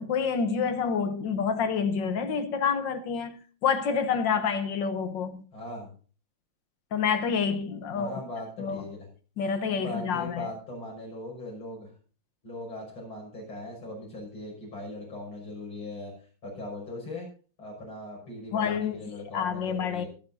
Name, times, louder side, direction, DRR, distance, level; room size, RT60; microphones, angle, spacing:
voice 1, 0.0-5.4 6.9-8.2 8.6-8.9 9.4-10.5 18.5-20.1, left 6 dB, 70° left, 1.5 m, -28 dB
voice 2, 5.5-5.9 7.9-9.0 9.8-11.9 12.4-16.1 16.4-17.3 17.6-20.1, left 1 dB, 85° left, 6.8 m, -39 dB
24.0 x 8.4 x 2.7 m
omnidirectional pair, 2.2 m